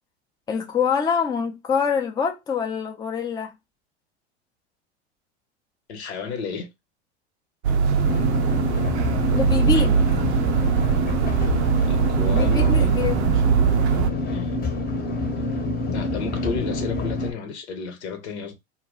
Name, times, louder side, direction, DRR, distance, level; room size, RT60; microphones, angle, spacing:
voice 1, 0.5-3.5 9.3-10.0 12.3-13.2, left 6 dB, 10° left, 0.5 m, -25 dB
voice 2, 5.9-6.7 11.9-12.9 14.2-14.6 15.9-18.5, left 5 dB, 75° left, 0.9 m, -32 dB
sound 1, 7.6-14.1, right 7 dB, 80° right, 0.5 m, -21 dB
sound 2, 8.0-17.3, left 2 dB, 30° left, 0.8 m, -27 dB
2.2 x 2.1 x 3.6 m
hypercardioid pair, 90°, 33 cm